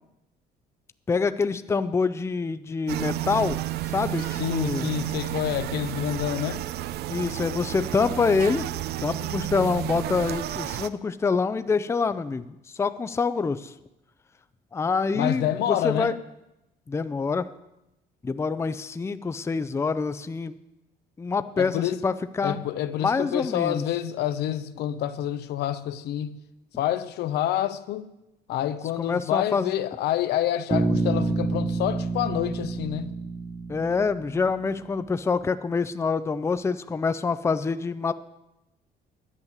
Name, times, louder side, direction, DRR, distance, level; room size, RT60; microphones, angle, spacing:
voice 1, 1.1-3.6 3.9-4.9 7.1-8.7 9.0-12.4 12.7-13.7 14.7-16.1 16.9-17.5 18.2-20.5 21.2-22.6 23.0-23.8 29.0-29.7 33.7-38.1, left 4 dB, 15° left, 0.5 m, -26 dB
sound 1, 2.9-10.9, right 14 dB, 70° right, 0.5 m, -31 dB
voice 2, 4.3-6.7 15.1-16.1 21.6-22.0 22.4-26.4 26.8-28.1 28.5-33.1, left 12 dB, 75° left, 0.7 m, -28 dB
Bass guitar, 30.7-34.8, right 3 dB, 25° right, 0.8 m, -28 dB
11.0 x 8.0 x 7.2 m
cardioid pair, 110°, 17 cm